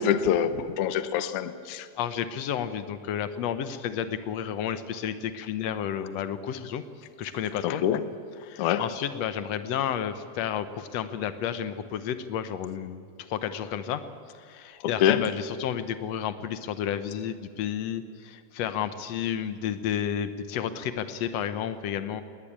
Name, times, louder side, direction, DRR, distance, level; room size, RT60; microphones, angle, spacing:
voice 1, 0.0-0.5 0.8-1.8 7.6-8.0 8.6-8.8 15.0-15.2, left 9 dB, 90° left, 12 dB, 1.2 m, -24 dB
voice 2, 2.0-6.8 7.2-7.8 8.4-14.0 14.4-22.2, left 9 dB, 65° left, 11 dB, 1.8 m, -31 dB
20.0 x 18.5 x 8.7 m, 2.2 s
omnidirectional pair, 3.7 m